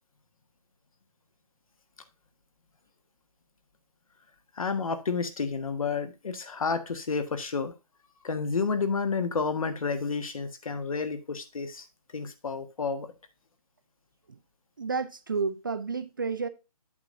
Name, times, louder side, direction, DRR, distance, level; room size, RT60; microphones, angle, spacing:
voice 1, 4.6-7.7 8.2-11.9 12.1-13.1, left 5 dB, 60° left, 1.4 m, -30 dB
voice 2, 14.8-16.5, right 4 dB, 35° right, 0.4 m, -31 dB
8.6 x 7.2 x 2.5 m
hypercardioid pair, 165°, 20 cm